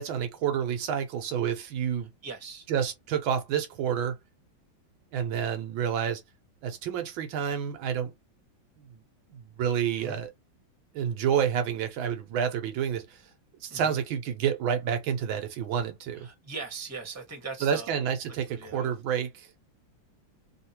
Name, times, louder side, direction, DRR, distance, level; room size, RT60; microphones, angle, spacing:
voice 1, 0.0-2.1 2.7-4.2 5.1-6.2 6.6-8.1 8.8-8.9 9.3-10.3 10.9-13.2 13.6-16.3 17.6-19.5, right 8 dB, 80° right, 1.6 m, -29 dB
voice 2, 2.2-2.7 10.0-10.2 13.7-13.9 16.1-17.9 18.5-18.9, right 4 dB, 10° right, 0.9 m, -40 dB
3.6 x 2.5 x 2.8 m
omnidirectional pair, 2.2 m